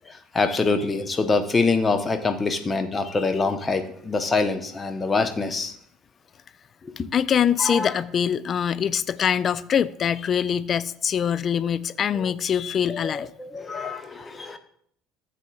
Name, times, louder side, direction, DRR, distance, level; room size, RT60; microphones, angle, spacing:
voice 1, 0.1-5.7 6.8-6.9 7.6-7.9 12.1-12.3 12.9-14.6, left 3 dB, 25° left, 1.0 m, -25 dB
voice 2, 7.1-13.3, left 8 dB, 40° left, 0.3 m, -24 dB
13.5 x 7.6 x 2.4 m
figure-of-eight pair, 60°, 0 cm